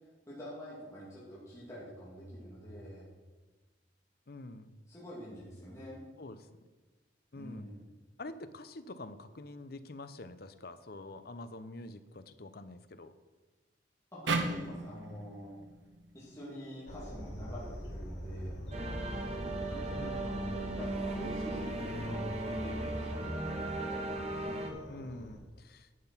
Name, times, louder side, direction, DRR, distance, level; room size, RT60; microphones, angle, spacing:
voice 1, 0.3-3.1 4.9-6.0 7.3-7.8 14.1-15.5 16.1-18.6 19.7-22.3 22.6-23.3, equal, 15° left, -8 dB, 2.6 m, -46 dB
voice 2, 4.3-4.8 6.2-6.5 7.3-7.7 8.2-13.1 20.0-20.5 24.9-25.9, left 2 dB, 55° left, 11 dB, 0.7 m, -46 dB
sound 1, 14.3-17.5, right 3 dB, 85° right, 1.2 m, -37 dB
sound 2, 16.9-25.4, equal, 85° left, 2.8 m, -44 dB
sound 3, 18.7-24.7, right 2 dB, 35° right, 1.4 m, -37 dB
11.0 x 7.9 x 5.7 m, 1.3 s
head